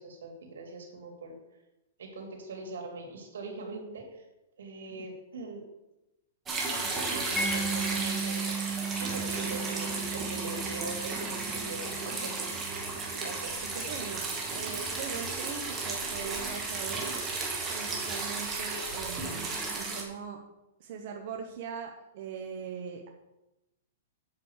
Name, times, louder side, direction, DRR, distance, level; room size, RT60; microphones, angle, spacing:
voice 1, 0.0-1.3 2.0-4.2 4.6-5.6 6.7-8.7 9.0-12.5 13.2-13.9, right 3 dB, 85° right, 2 dB, 2.9 m, -42 dB
sound 1, 6.5-20.0, right 3 dB, 15° right, 2.0 m, -34 dB
Mallet percussion, 7.4-14.1, right 4 dB, 10° left, 0.8 m, -37 dB
voice 2, 13.7-14.2 14.5-17.2 17.7-20.4 20.8-23.1, right 6 dB, 50° right, 2 dB, 1.1 m, -41 dB
8.3 x 6.2 x 6.6 m, 0.96 s
hypercardioid pair, 155°, 0 cm